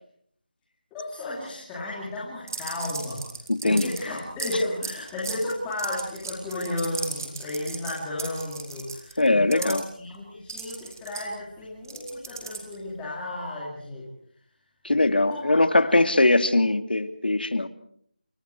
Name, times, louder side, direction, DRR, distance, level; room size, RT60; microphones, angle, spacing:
voice 1, 0.9-3.3 3.6-14.1 15.1-15.6 16.0-16.1, left 1 dB, 5° left, -7 dB, 2.9 m, -33 dB
sound 1, 2.5-9.8 10.5-12.9, right 5 dB, 20° right, 3.2 m, -36 dB
voice 2, 3.5-3.9 9.2-9.8 14.8-17.7, left 2 dB, 85° left, 9 dB, 2.7 m, -21 dB
29.0 x 28.0 x 4.7 m, 0.63 s
figure-of-eight pair, 180°, 5 cm